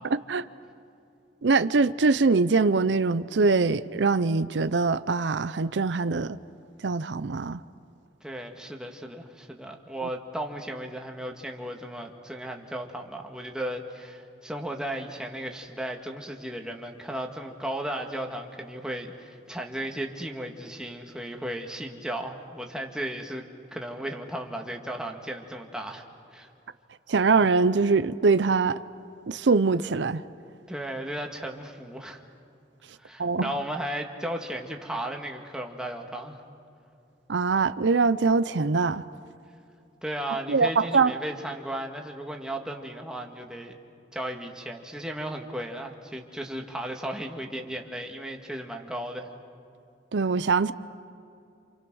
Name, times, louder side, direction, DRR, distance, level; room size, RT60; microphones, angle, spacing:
voice 1, 0.1-0.5 1.4-6.4 6.8-7.6 27.1-28.8 29.3-30.2 33.2-33.5 37.3-39.0 40.5-41.1 50.1-50.7, right 4 dB, 90° right, 14 dB, 0.6 m, -23 dB
voice 2, 8.2-23.4 23.7-26.0 26.3-26.5 30.7-32.2 33.0-36.4 40.0-43.8 44.1-49.3, right 1 dB, 5° right, 2 dB, 1.9 m, -35 dB
28.5 x 27.5 x 6.3 m, 2.7 s
head